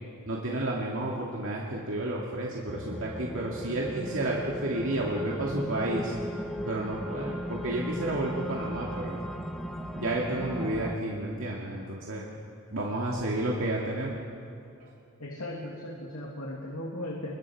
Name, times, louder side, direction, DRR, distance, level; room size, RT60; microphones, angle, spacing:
voice 1, 0.3-6.1 6.7-9.2 10.0-12.3 12.7-14.2, right 1 dB, 65° right, -3 dB, 2.4 m, -31 dB
sound 1, 2.7-11.0, equal, ahead, 1.3 m, -36 dB
voice 2, 15.2-17.3, left 1 dB, 85° left, -2 dB, 2.7 m, -37 dB
28.5 x 22.5 x 4.9 m, 2.6 s
head